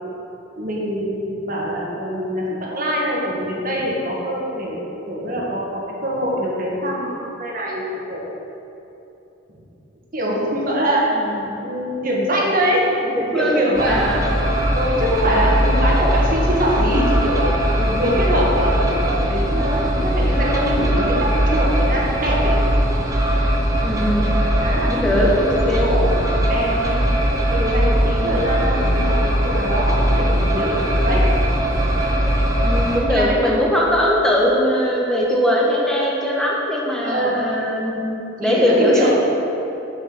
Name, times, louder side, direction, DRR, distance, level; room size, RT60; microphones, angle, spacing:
voice 1, 0.6-8.3 10.1-11.0 11.6-12.8 13.3-14.0 14.7-17.5 17.8-22.5 24.6-25.3 25.6-26.1 26.5-27.0 27.5-31.2 33.1-33.6 37.0-37.5 38.4-39.1, equal, 45° right, -4 dB, 1.5 m, -23 dB
voice 2, 11.1-11.5 13.0-14.3 15.2-15.5 23.8-24.3 24.8-25.9 32.6-39.2, equal, 5° left, -4 dB, 1.2 m, -21 dB
sound 1, 13.8-33.0, equal, 15° right, 0.8 m, -20 dB
6.9 x 5.8 x 6.1 m, 3.0 s
head